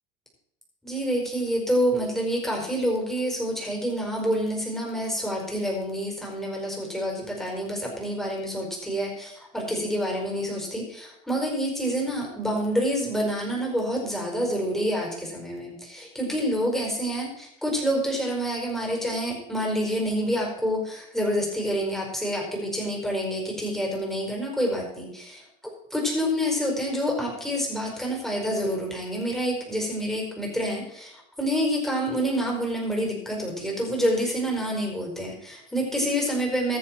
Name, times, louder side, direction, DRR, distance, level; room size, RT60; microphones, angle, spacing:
voice 1, 0.8-25.4 25.9-36.8, equal, ahead, -1 dB, 4.9 m, -27 dB
22.0 x 7.4 x 4.5 m, 0.77 s
cardioid pair, 130°, 19 cm